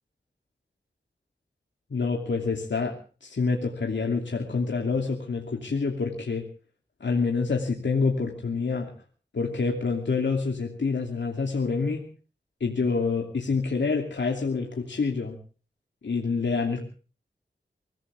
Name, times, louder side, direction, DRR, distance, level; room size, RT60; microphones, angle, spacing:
voice 1, 1.9-6.4 7.0-8.9 9.3-12.1 12.6-15.4 16.0-16.8, left 4 dB, 90° left, 1 dB, 2.8 m, -27 dB
24.5 x 16.5 x 3.5 m, 0.39 s
wide cardioid pair, 60°, 18 cm